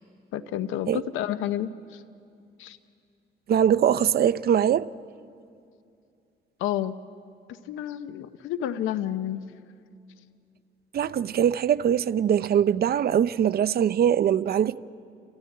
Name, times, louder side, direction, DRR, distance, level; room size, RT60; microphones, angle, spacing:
voice 1, 0.3-2.0 2.6-2.8 6.6-6.9 7.5-9.4, left 11 dB, 90° left, 0.7 m, -30 dB
voice 2, 3.5-4.9 10.9-14.8, right 9 dB, 50° right, 0.6 m, -22 dB
29.5 x 14.0 x 9.5 m
cardioid pair, 90°, 20 cm